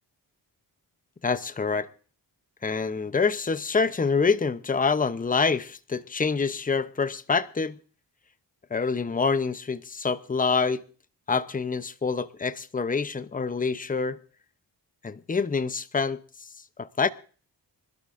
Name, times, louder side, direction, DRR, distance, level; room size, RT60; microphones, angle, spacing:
voice 1, 1.2-1.9 2.6-7.8 8.7-10.8 11.3-14.2 15.0-16.2 16.8-17.1, left 5 dB, 20° left, 0.7 m, -26 dB
25.0 x 12.5 x 2.6 m
cardioid pair, 75°, 43 cm